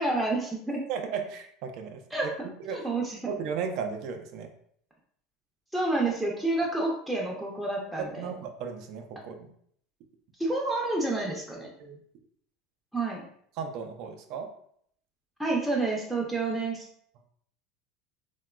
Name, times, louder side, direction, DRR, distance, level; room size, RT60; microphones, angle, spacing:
voice 1, 0.0-0.8 2.1-2.5 2.7-3.2 5.7-8.3 10.4-11.7 12.9-13.2 15.4-16.9, right 2 dB, 5° right, -3 dB, 0.5 m, -29 dB
voice 2, 0.9-2.0 2.6-2.8 3.3-4.5 8.0-9.5 11.6-12.0 13.6-14.5, right 6 dB, 65° right, 5 dB, 0.4 m, -35 dB
2.8 x 2.2 x 2.2 m, 0.65 s
supercardioid pair, 100°, 0 cm